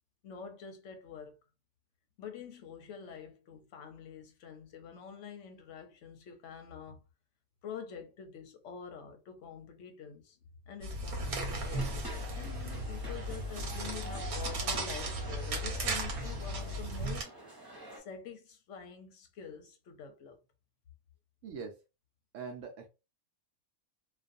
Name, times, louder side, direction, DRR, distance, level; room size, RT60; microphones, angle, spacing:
voice 1, 0.2-1.4 2.2-7.0 7.6-10.4 10.7-17.3 17.6-20.4, left 7 dB, 65° left, 0.8 m, -47 dB
sound 1, 10.8-17.2, right 1 dB, 85° right, 1.2 m, -36 dB
sound 2, 11.7-18.0, right 2 dB, 15° right, 1.0 m, -48 dB
voice 2, 21.4-21.8 22.3-22.9, right 5 dB, 70° right, 0.8 m, -42 dB
2.4 x 2.3 x 2.5 m
omnidirectional pair, 1.5 m